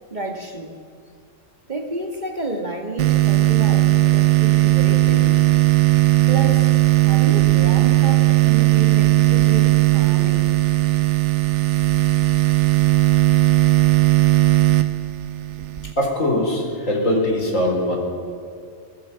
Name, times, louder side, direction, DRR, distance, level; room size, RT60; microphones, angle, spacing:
voice 1, 0.1-0.7 1.7-5.4 6.3-6.8 7.0-11.0, right 2 dB, 35° right, 3 dB, 1.9 m, -30 dB
sound 1, 3.0-15.9, right 18 dB, 65° right, 1.0 m, -17 dB
voice 2, 16.0-18.0, left 1 dB, 75° left, 1 dB, 4.7 m, -21 dB
23.5 x 21.0 x 5.8 m, 2.3 s
omnidirectional pair, 1.4 m